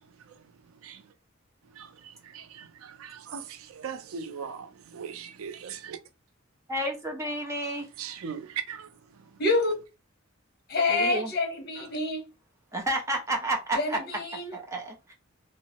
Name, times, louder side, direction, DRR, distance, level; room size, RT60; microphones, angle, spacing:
voice 1, 2.3-6.0 8.0-8.9, right 7 dB, 90° right, 0.4 m, -39 dB
voice 2, 6.7-7.9 10.9-11.3 12.7-14.0 14.5-15.1, right 1 dB, 15° right, 0.7 m, -30 dB
voice 3, 9.4-9.7 10.7-12.2 13.7-14.5, left 3 dB, 50° left, 1.0 m, -27 dB
2.9 x 2.0 x 2.8 m
head